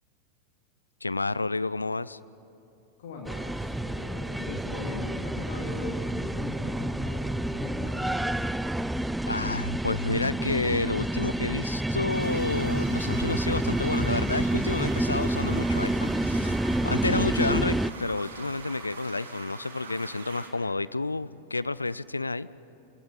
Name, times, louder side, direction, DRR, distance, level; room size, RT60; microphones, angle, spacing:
voice 1, 1.0-2.2 9.3-16.5 16.8-22.5, left 3 dB, 80° left, 18 dB, 0.4 m, -30 dB
voice 2, 3.0-7.3 7.5-8.2, left 3 dB, 60° left, 0 dB, 2.6 m, -40 dB
sound 1, 3.3-17.9, right 1 dB, 5° right, 0.5 m, -28 dB
sound 2, 12.1-20.5, right 4 dB, 70° right, 2.9 m, -43 dB
25.0 x 16.0 x 8.7 m, 2.8 s
figure-of-eight pair, 90°, 0 cm